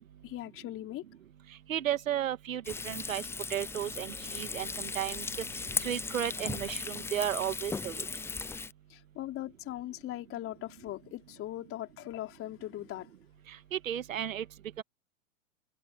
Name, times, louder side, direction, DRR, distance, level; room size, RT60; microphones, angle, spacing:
voice 1, 0.2-1.0 8.9-13.1, left 14 dB, 30° left, 4.3 m, -40 dB
voice 2, 1.7-3.2 3.5-5.2 5.8-8.0 13.7-14.4 14.8-14.9, right 11 dB, 75° right, 2.0 m, -33 dB
Frying (food), 2.6-8.7, left 4 dB, 5° left, 0.6 m, -37 dB
hypercardioid pair, 110°, 41 cm